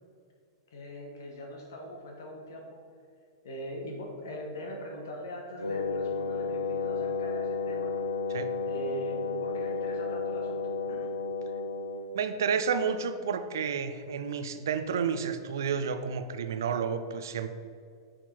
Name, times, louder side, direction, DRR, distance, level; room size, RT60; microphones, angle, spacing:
voice 1, 0.7-2.8 3.4-8.0 8.6-11.2, equal, 65° left, 1 dB, 1.4 m, -41 dB
Wind instrument woodwind instrument, 5.6-12.2, left 4 dB, 85° left, 0.8 m, -32 dB
voice 2, 12.1-17.5, right 6 dB, 65° right, 10 dB, 0.6 m, -30 dB
10.0 x 6.0 x 4.4 m, 2.4 s
figure-of-eight pair, 95°, 2 cm